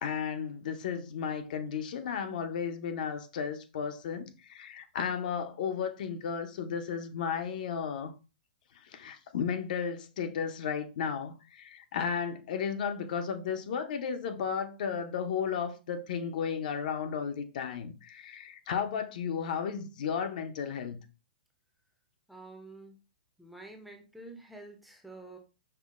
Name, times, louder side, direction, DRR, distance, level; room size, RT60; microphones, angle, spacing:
voice 1, 0.0-8.1 8.9-21.0, left 7 dB, 60° left, 0.5 m, -34 dB
voice 2, 22.3-23.0 23.4-25.4, right 2 dB, ahead, 0.5 m, -48 dB
5.5 x 2.0 x 2.4 m
hypercardioid pair, 145°, 5 cm